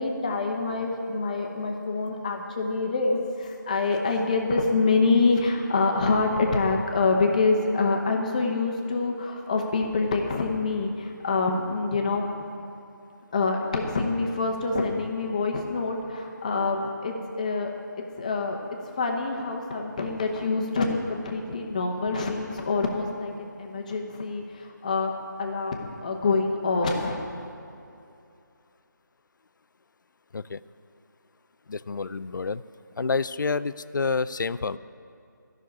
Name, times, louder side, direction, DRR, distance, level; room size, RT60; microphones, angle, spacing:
voice 1, 0.0-12.4 13.3-17.7 18.0-18.6 19.0-25.1 25.4-27.3, left 3 dB, 20° left, 1 dB, 0.9 m, -26 dB
voice 2, 31.7-32.6 33.0-34.8, left 4 dB, 70° left, 15 dB, 0.4 m, -28 dB
13.0 x 6.3 x 9.6 m, 2.6 s
figure-of-eight pair, 170°, 11 cm